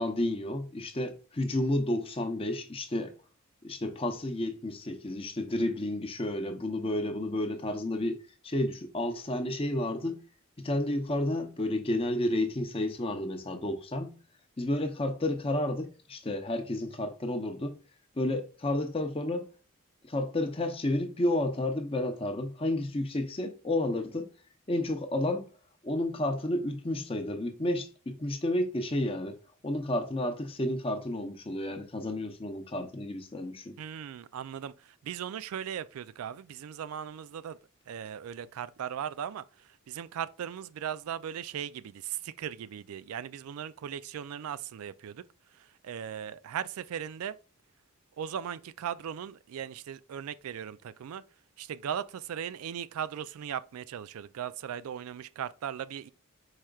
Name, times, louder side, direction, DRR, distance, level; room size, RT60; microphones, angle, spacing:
voice 1, 0.0-3.1 3.6-8.2 8.4-10.2 10.6-14.2 14.6-17.7 18.2-19.5 20.1-24.3 24.7-25.5 25.8-29.4 29.6-33.8, left 1 dB, 25° left, 0.6 m, -31 dB
voice 2, 33.8-34.7 35.0-37.6 37.9-39.4 39.9-45.2 45.8-47.3 48.2-51.2 51.6-56.1, right 9 dB, 85° right, 0.3 m, -38 dB
4.9 x 4.3 x 2.3 m
head